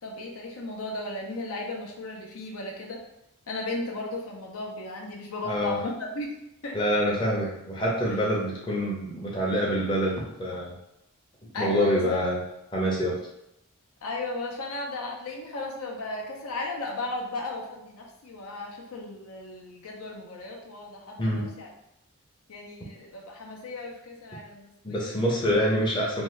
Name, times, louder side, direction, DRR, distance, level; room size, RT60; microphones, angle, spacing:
voice 1, 0.0-3.0 3.5-6.4 6.6-6.8 7.1-7.2 11.5-12.2 14.0-21.7 22.5-25.2, left 2 dB, 80° left, -1 dB, 0.6 m, -35 dB
voice 2, 5.4-5.7 6.7-10.7 11.6-12.4 12.7-13.2 21.2-21.5 24.8-26.2, equal, 20° left, -4 dB, 0.6 m, -26 dB
2.7 x 2.3 x 3.2 m, 0.85 s
head